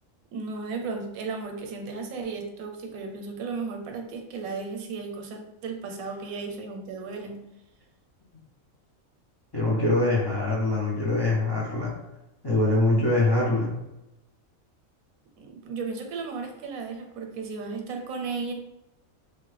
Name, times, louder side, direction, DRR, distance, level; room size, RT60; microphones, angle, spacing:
voice 1, 0.3-7.4 15.4-18.5, right 4 dB, 90° right, 4 dB, 1.0 m, -35 dB
voice 2, 9.5-11.9 12.4-13.7, left 2 dB, 40° left, -5 dB, 0.3 m, -23 dB
2.9 x 2.3 x 3.2 m, 0.94 s
omnidirectional pair, 1.4 m